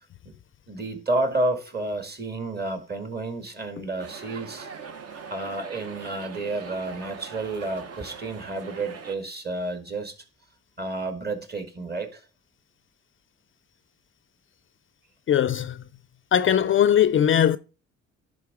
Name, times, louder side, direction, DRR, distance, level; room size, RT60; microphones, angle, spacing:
voice 1, 0.7-4.7 5.3-10.1 10.8-12.2, right 2 dB, 30° right, 1.9 m, -30 dB
sound 1, 4.0-9.2, right 6 dB, 55° right, 1.0 m, -41 dB
voice 2, 15.3-15.8 16.3-17.6, left 9 dB, 45° left, 0.4 m, -20 dB
10.5 x 3.7 x 4.8 m
cardioid pair, 90°, 30 cm